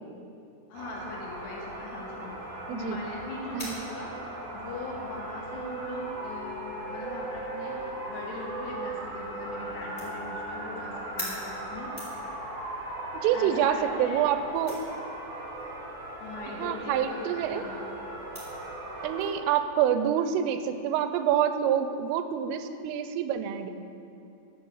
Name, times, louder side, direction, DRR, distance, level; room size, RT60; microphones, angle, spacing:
voice 1, 0.7-4.1 4.5-11.9 13.3-14.2 16.2-17.9, left 3 dB, 70° left, -1 dB, 2.8 m, -40 dB
sound 1, 0.7-19.3, right 1 dB, 40° right, 2.6 m, -38 dB
sound 2, 1.6-19.3, equal, 10° left, 1.9 m, -49 dB
voice 2, 13.2-14.8 16.6-17.6 19.0-23.7, right 9 dB, 90° right, 9 dB, 3.2 m, -27 dB
10.0 x 7.1 x 7.0 m, 2.8 s
omnidirectional pair, 5.6 m